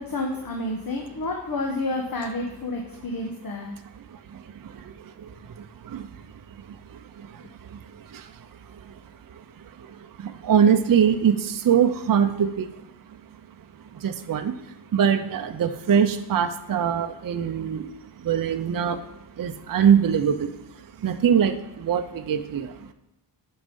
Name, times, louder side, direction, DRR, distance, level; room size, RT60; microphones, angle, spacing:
voice 1, 0.0-3.7, left 2 dB, 50° left, 1 dB, 1.1 m, -30 dB
voice 2, 10.4-12.7 14.0-14.5 14.9-17.8 18.3-19.0 19.4-20.3 21.0-21.5 21.8-22.7, right 8 dB, 50° right, 7 dB, 0.5 m, -21 dB
9.5 x 5.4 x 5.3 m, 0.89 s
wide cardioid pair, 115°, 44 cm